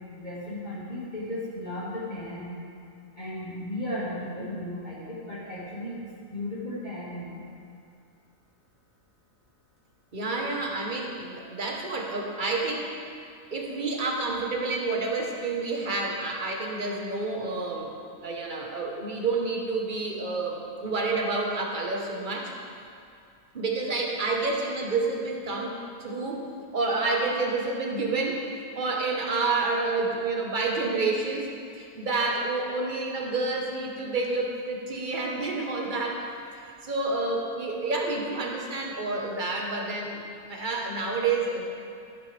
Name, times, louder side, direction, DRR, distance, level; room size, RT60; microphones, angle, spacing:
voice 1, 0.2-2.5 3.2-6.0 6.3-7.4, left 1 dB, 35° left, -10 dB, 2.1 m, -35 dB
voice 2, 10.1-12.9 13.5-17.9 18.2-22.5 23.5-26.5 26.7-28.4 28.7-31.5 31.8-36.3 36.8-41.7, right 3 dB, 40° right, 0 dB, 1.3 m, -29 dB
13.0 x 8.3 x 3.4 m, 2.4 s
omnidirectional pair, 1.4 m